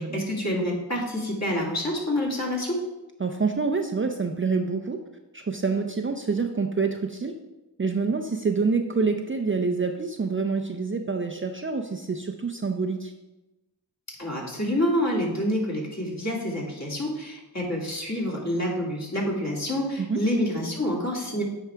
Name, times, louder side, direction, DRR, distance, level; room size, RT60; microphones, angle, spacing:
voice 1, 0.0-2.8 14.2-21.4, left 1 dB, 40° left, -3 dB, 2.4 m, -27 dB
voice 2, 3.2-5.0 5.3-7.4 7.8-13.1 20.0-20.2, right 4 dB, 30° right, 4 dB, 0.5 m, -27 dB
8.8 x 4.8 x 3.5 m, 1.0 s
cardioid pair, 40°, 43 cm